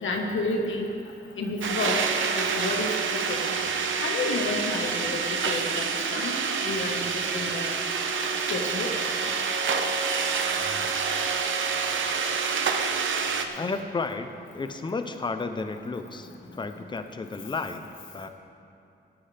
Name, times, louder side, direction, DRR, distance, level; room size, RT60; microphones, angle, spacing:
voice 1, 0.0-0.9 1.4-2.0 2.4-3.4 4.0-6.3 6.6-7.1 7.3-7.8 8.5-8.9, left 2 dB, 85° left, 1 dB, 1.5 m, -30 dB
sound 1, 1.6-13.5, right 5 dB, 85° right, 0.8 m, -27 dB
voice 2, 13.5-17.8 18.1-18.3, left 3 dB, 25° left, 8 dB, 0.6 m, -32 dB
18.0 x 9.4 x 3.4 m, 2.8 s
wide cardioid pair, 175°, 20 cm